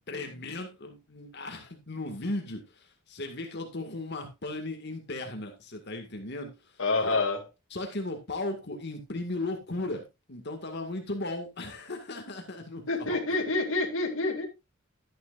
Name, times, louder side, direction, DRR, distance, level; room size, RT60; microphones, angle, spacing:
voice 1, 0.1-6.7 7.7-13.2, left 2 dB, 55° left, 2.0 m, -36 dB
voice 2, 6.8-7.5 12.9-14.5, left 3 dB, 75° left, 2.4 m, -27 dB
12.0 x 10.0 x 2.5 m
head